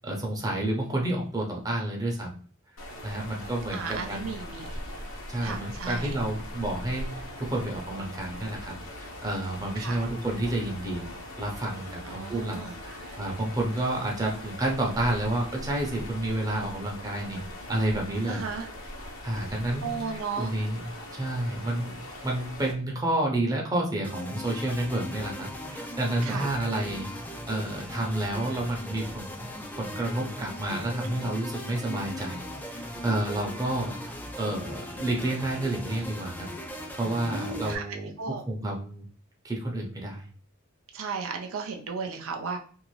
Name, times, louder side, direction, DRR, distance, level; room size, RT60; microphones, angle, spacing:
voice 1, 0.0-2.3 3.0-4.3 5.3-11.1 11.4-17.4 17.7-18.4 19.2-22.0 22.2-27.1 27.5-29.5 29.8-32.4 32.7-34.0 34.4-36.5 37.0-39.0 39.4-40.3, right 1 dB, 20° right, -1 dB, 0.7 m, -30 dB
sound 1, 2.8-22.7, left 1 dB, 80° left, 0.9 m, -41 dB
voice 2, 3.7-4.8 5.4-6.2 9.8-10.0 12.1-13.2 18.3-18.7 19.8-20.5 26.2-26.5 31.0-31.3 37.3-38.4 40.9-42.6, right 5 dB, 80° right, 3 dB, 0.5 m, -35 dB
sound 2, 24.0-37.7, left 1 dB, 10° left, 0.4 m, -39 dB
2.7 x 2.5 x 3.1 m, 0.43 s
head